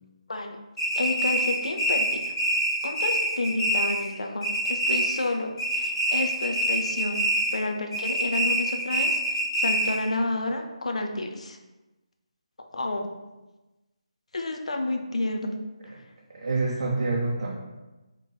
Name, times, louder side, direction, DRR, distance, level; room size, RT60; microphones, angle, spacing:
sound 1, 0.8-4.1 4.4-5.3 5.6-7.6 7.9-10.1, right 1 dB, 10° left, 1.4 m, -26 dB
voice 1, 1.0-2.3 2.8-7.2 7.5-11.6 12.7-13.1 14.3-15.6, left 2 dB, 75° left, 4 dB, 0.4 m, -30 dB
voice 2, 16.3-17.5, right 3 dB, 60° right, -3 dB, 0.5 m, -27 dB
3.0 x 2.9 x 2.2 m, 1.1 s
figure-of-eight pair, 155°, 3 cm